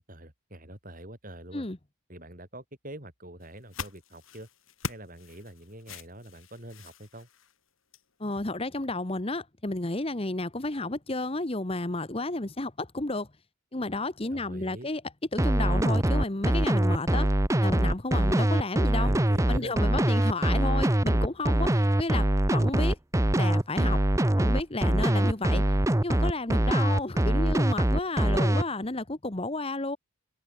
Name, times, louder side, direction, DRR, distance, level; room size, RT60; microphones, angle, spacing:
voice 1, 0.0-1.7 2.1-4.5 4.9-7.3 14.3-14.9 19.0-19.7, right 1 dB, 40° right, 6.5 m, -44 dB
sound 1, 3.4-8.1, left 4 dB, 75° left, 6.2 m, -42 dB
voice 2, 8.2-13.3 13.7-15.0 15.3-17.3 17.6-19.1 19.5-23.0 23.3-24.0 24.4-25.6 26.0-30.0, left 2 dB, 25° left, 1.1 m, -32 dB
sound 2, 15.4-28.6, right 1 dB, 15° right, 0.8 m, -23 dB
open air
head